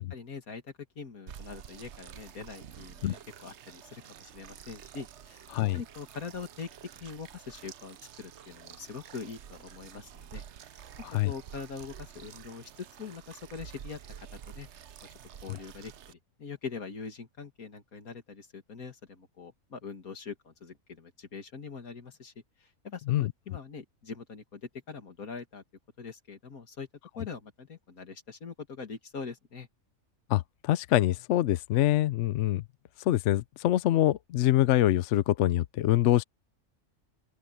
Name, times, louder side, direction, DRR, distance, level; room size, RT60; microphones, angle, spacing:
voice 1, 0.0-5.5 5.7-6.7 7.0-10.8 11.3-14.0 14.3-14.7 15.4-22.3 22.6-25.6 26.0-26.9 27.2-29.7, left 5 dB, 85° left, 2.6 m, -43 dB
sound 1, 1.3-16.1, right 9 dB, 60° right, 1.0 m, -49 dB
voice 2, 30.3-32.6 33.0-36.2, left 13 dB, 65° left, 0.8 m, -25 dB
open air
omnidirectional pair, 1.5 m